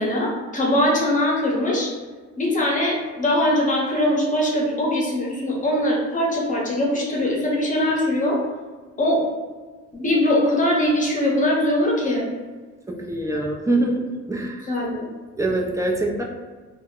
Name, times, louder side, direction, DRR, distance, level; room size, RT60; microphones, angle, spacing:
voice 1, 0.0-1.9 2.4-8.4 9.0-9.2 9.9-12.3 14.7-15.1, left 1 dB, 25° left, -2 dB, 0.8 m, -21 dB
voice 2, 12.9-14.0 14.3-14.7 15.4-16.2, right 2 dB, 10° right, -1 dB, 0.4 m, -24 dB
2.1 x 2.0 x 3.6 m, 1.4 s
cardioid pair, 90°, 30 cm